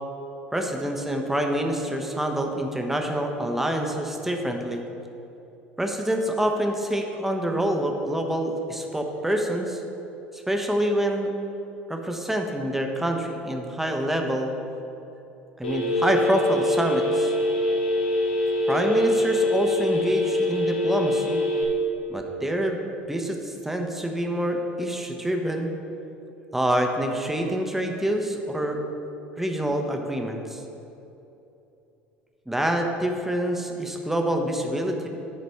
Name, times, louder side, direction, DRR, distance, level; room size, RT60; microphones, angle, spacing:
voice 1, 0.5-4.8 5.8-9.8 10.3-11.3 11.9-14.5 15.6-17.3 18.7-21.4 22.1-22.8 23.1-25.7 26.5-28.8 29.4-30.6 32.5-35.1, right 1 dB, 5° right, 3 dB, 1.0 m, -26 dB
Telephone, 15.6-21.6, left 1 dB, 90° left, 1.2 m, -24 dB
9.6 x 4.0 x 5.7 m, 2.9 s
hypercardioid pair, 70°, 5 cm